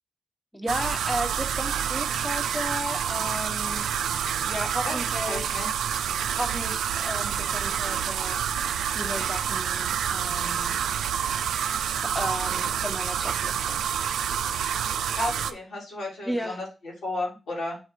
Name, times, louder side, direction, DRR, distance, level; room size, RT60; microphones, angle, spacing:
voice 1, 0.5-4.1 4.5-5.7 6.3-8.4 8.9-10.8 12.1-13.8 16.2-16.6, equal, 5° left, 4 dB, 1.2 m, -34 dB
sound 1, 0.7-15.5, right 9 dB, 85° right, 0.4 m, -28 dB
voice 2, 5.3-5.7 15.2-17.8, left 1 dB, 75° left, -4 dB, 3.7 m, -33 dB
8.2 x 3.2 x 4.6 m, 0.31 s
supercardioid pair, 45°, 0 cm